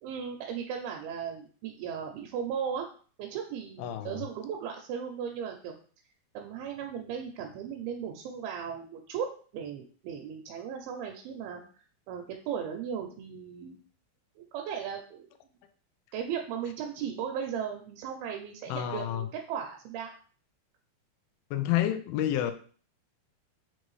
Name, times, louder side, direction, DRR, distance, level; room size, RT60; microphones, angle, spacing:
voice 1, 0.0-2.9 3.2-5.7 6.3-11.6 12.1-13.8 14.4-15.2 16.1-20.1, right 7 dB, 85° right, 2 dB, 2.4 m, -36 dB
voice 2, 3.8-4.3 18.7-19.3 21.5-22.5, left 12 dB, 85° left, 8 dB, 2.4 m, -29 dB
6.1 x 2.6 x 3.1 m, 0.42 s
omnidirectional pair, 4.2 m